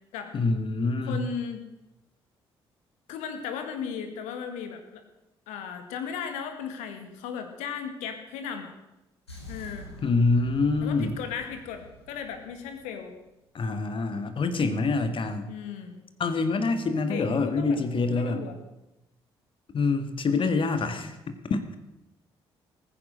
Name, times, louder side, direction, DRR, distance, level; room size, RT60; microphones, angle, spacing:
voice 1, 0.3-1.2 10.0-11.1 13.5-15.5 16.2-18.4 19.7-21.8, left 3 dB, 40° left, 9 dB, 1.8 m, -26 dB
voice 2, 1.1-1.7 3.1-5.0 5.5-8.7 9.5-9.9 10.8-13.1 15.5-16.0 17.1-17.8 18.1-18.6, left 7 dB, 65° left, 7 dB, 2.0 m, -36 dB
sound 1, 9.3-13.4, equal, 85° left, 1.9 m, -46 dB
20.0 x 9.9 x 6.6 m, 0.96 s
figure-of-eight pair, 45°, 13 cm